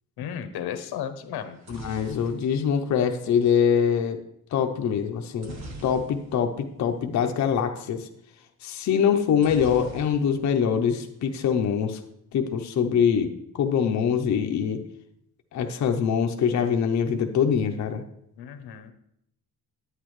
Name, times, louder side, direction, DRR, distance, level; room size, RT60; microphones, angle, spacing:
voice 1, 0.2-1.6 18.4-18.9, left 9 dB, 80° left, 10 dB, 0.8 m, -34 dB
sound 1, 1.3-3.5 5.4-6.6 6.9-7.0 7.2-7.5 9.4-10.6 10.9-11.5, right 1 dB, 45° right, 1.3 m, -42 dB
voice 2, 1.7-4.2 4.5-5.5 5.8-8.1 8.6-12.0 12.3-14.8 15.5-18.0, left 7 dB, 50° left, 4 dB, 0.6 m, -24 dB
9.4 x 8.3 x 3.1 m, 0.75 s
cardioid pair, 165°, 38 cm